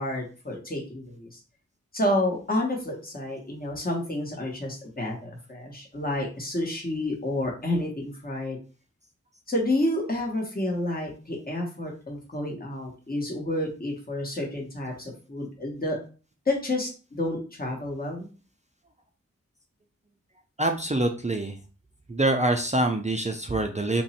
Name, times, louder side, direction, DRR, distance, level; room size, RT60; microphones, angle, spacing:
voice 1, 0.0-1.4 1.9-8.6 9.5-16.0 16.5-18.3, left 1 dB, 30° left, -1 dB, 1.2 m, -29 dB
voice 2, 20.6-21.6 22.1-24.0, right 1 dB, 25° right, 3 dB, 0.5 m, -25 dB
3.0 x 2.6 x 4.2 m, 0.35 s
wide cardioid pair, 65°, 30 cm